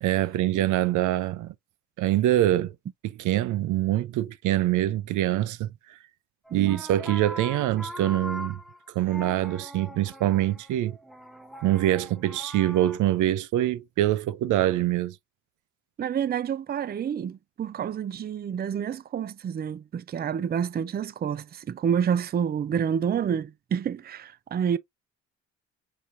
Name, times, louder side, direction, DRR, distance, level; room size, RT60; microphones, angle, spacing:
voice 1, 0.0-1.5 2.0-2.7 3.2-6.0 6.5-8.6 8.9-11.0 11.6-15.2, right 13 dB, 80° right, 0.5 m, -24 dB
sound 1, 6.5-13.0, equal, ahead, 0.7 m, -41 dB
voice 2, 6.5-6.8 16.0-24.8, right 8 dB, 30° right, 0.5 m, -28 dB
4.7 x 4.2 x 2.6 m
cardioid pair, 90°, 30 cm